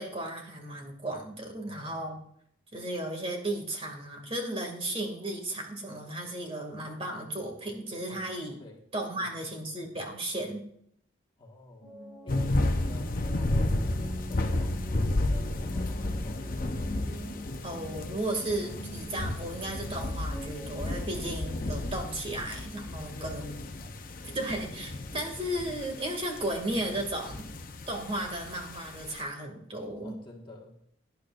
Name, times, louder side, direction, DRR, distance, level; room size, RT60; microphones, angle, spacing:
voice 1, 0.0-2.2 2.7-8.6 8.9-10.6 17.6-23.6 24.3-27.4 27.9-30.1, right 1 dB, 30° right, 2 dB, 2.4 m, -35 dB
voice 2, 1.6-2.1 8.0-8.2 8.6-8.8 9.2-9.3 11.4-11.9 12.2-13.9 14.3-16.4 23.1-24.3 24.8-25.0 30.0-30.7, left 2 dB, 25° left, -1 dB, 1.7 m, -50 dB
sound 1, 11.8-21.2, equal, 5° right, 4.9 m, -44 dB
sound 2, 12.3-29.2, left 1 dB, 40° left, 0.8 m, -32 dB
18.0 x 10.5 x 2.6 m, 0.68 s
head